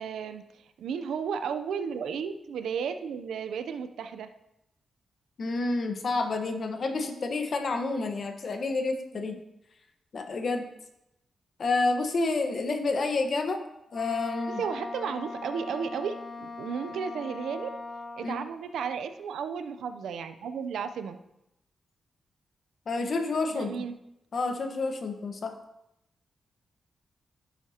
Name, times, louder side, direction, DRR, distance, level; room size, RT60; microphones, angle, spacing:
voice 1, 0.0-4.3 9.1-9.4 14.5-17.7 18.2-21.2 23.5-24.0, right 6 dB, 85° right, 9 dB, 0.6 m, -34 dB
voice 2, 5.4-9.3 10.1-10.7 11.6-13.6 13.9-14.6 18.2-18.3 22.9-23.7 24.3-25.5, left 3 dB, 60° left, 5 dB, 1.2 m, -29 dB
Wind instrument woodwind instrument, 13.9-18.4, left 3 dB, 35° left, 1.9 m, -40 dB
11.0 x 8.2 x 2.9 m, 0.85 s
cardioid pair, 75°, 0 cm